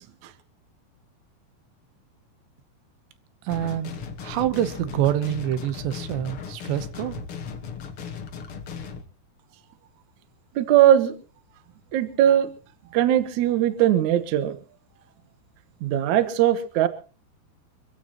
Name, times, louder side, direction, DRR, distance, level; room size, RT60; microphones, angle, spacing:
voice 1, 3.4-3.9 4.2-7.2, right 12 dB, 90° right, 3.3 m, -26 dB
sound 1, 3.5-9.0, left 6 dB, 70° left, 1.3 m, -37 dB
voice 2, 10.6-11.1 11.9-12.5 12.9-14.6 15.8-16.9, right 11 dB, 65° right, 2.1 m, -20 dB
25.0 x 15.5 x 3.0 m
omnidirectional pair, 4.8 m